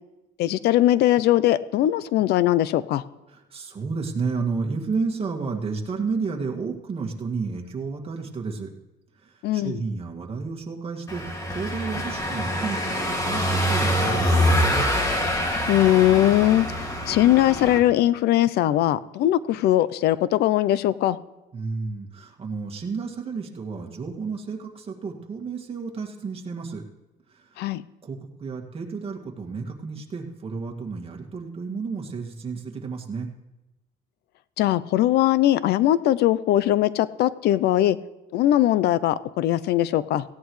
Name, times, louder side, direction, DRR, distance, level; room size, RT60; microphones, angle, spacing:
voice 1, 0.4-3.0 9.4-9.8 15.7-16.7 17.1-21.2 27.6-27.8 34.6-38.0 38.3-40.2, left 13 dB, 75° left, 17 dB, 0.5 m, -20 dB
voice 2, 3.3-8.7 9.2-14.9 21.5-26.8 27.3-27.4 28.0-33.3, right 4 dB, 35° right, 1 dB, 2.0 m, -31 dB
Car passing by / Engine, 11.1-17.8, equal, 20° left, 2.3 m, -25 dB
17.5 x 16.0 x 3.2 m, 1.0 s
cardioid pair, 110°, 17 cm